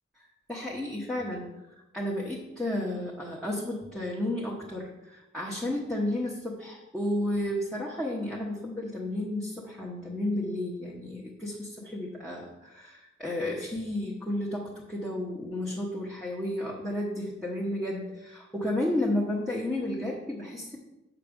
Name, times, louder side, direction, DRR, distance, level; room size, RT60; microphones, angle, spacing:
voice 1, 0.5-1.5 1.9-20.8, left 1 dB, ahead, -6 dB, 1.1 m, -32 dB
7.4 x 5.9 x 5.2 m, 0.95 s
head